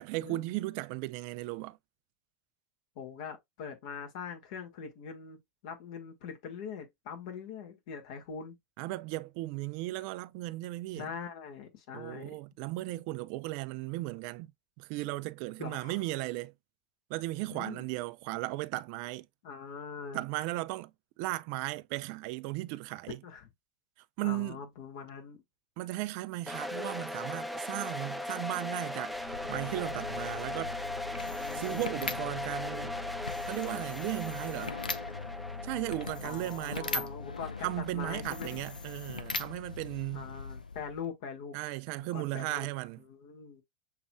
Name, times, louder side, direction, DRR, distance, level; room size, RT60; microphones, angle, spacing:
voice 1, 0.0-1.8 8.8-11.1 11.9-14.5 14.8-16.5 17.1-19.3 20.1-20.9 21.2-23.2 24.2-24.6 25.8-30.7 31.5-33.0 33.4-34.8 35.6-37.1 37.6-40.3 41.5-43.0, right 18 dB, 55° right, 0.4 m, -36 dB
voice 2, 2.9-8.6 10.9-12.4 15.6-16.0 17.5-17.9 19.4-20.2 23.2-23.5 24.2-25.4 31.3-32.3 36.2-38.6 40.1-41.6 42.0-42.7 43.1-43.6, left 6 dB, 60° left, 1.5 m, -43 dB
sound 1, 26.5-39.3, left 1 dB, ahead, 0.6 m, -39 dB
sound 2, 29.1-41.1, left 4 dB, 90° left, 0.4 m, -40 dB
6.5 x 3.0 x 2.2 m
figure-of-eight pair, 80°, 4 cm